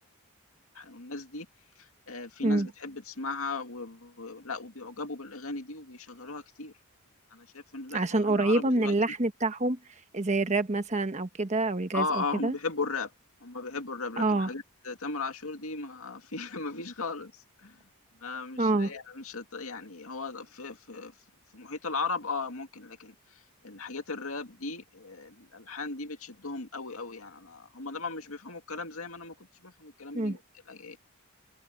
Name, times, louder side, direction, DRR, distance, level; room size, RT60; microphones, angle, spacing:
voice 1, 0.7-1.5 1.8-6.7 7.3-9.0 11.9-13.1 13.4-17.8 18.2-21.1 21.5-30.4 30.7-31.0, left 3 dB, 65° left, 2.4 m, -37 dB
voice 2, 7.9-9.8 10.1-12.5 14.2-14.5 18.6-18.9 30.1-30.4, right 2 dB, 30° right, 1.1 m, -26 dB
head